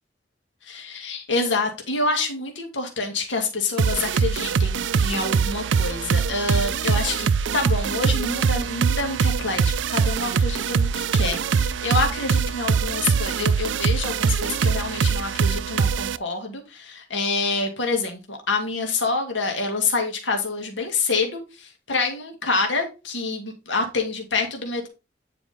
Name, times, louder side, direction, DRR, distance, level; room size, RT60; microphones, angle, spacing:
voice 1, 0.7-24.9, left 3 dB, 85° left, 3 dB, 2.1 m, -27 dB
sound 1, 3.8-16.2, right 6 dB, 85° right, 0.4 m, -23 dB
9.4 x 4.9 x 3.5 m, 0.28 s
head